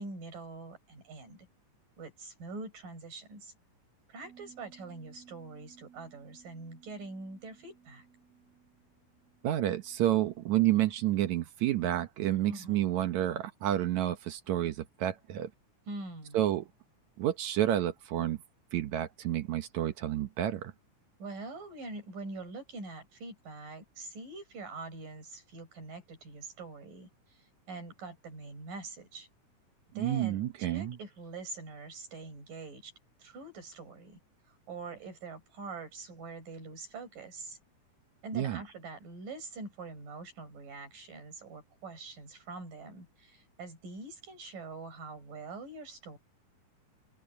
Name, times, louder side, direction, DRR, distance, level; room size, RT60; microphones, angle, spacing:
voice 1, 0.0-1.5 2.0-3.5 4.1-8.1 12.4-12.8 15.9-16.4 21.2-29.3 29.9-32.9 33.2-34.2 34.5-37.6 38.2-46.2, right 3 dB, 85° right, 8.3 m, -44 dB
Bass guitar, 4.2-10.5, right 8 dB, 85° left, 6.6 m, -59 dB
voice 2, 9.4-15.5 16.3-16.6 17.2-18.4 18.7-20.7 29.9-31.0 38.4-38.6, right 12 dB, 70° right, 2.1 m, -30 dB
open air
omnidirectional pair, 3.8 m